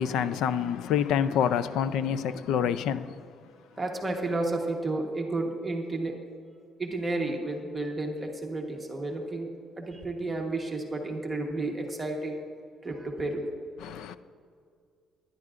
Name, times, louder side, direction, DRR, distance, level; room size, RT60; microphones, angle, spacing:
voice 1, 0.0-3.1 13.8-14.2, left 8 dB, 75° left, 0.4 m, -27 dB
voice 2, 3.8-6.1 6.8-9.5 9.8-12.4 12.8-13.4, right 2 dB, 15° right, 1.1 m, -31 dB
20.5 x 10.5 x 2.5 m
cardioid pair, 175°, 0 cm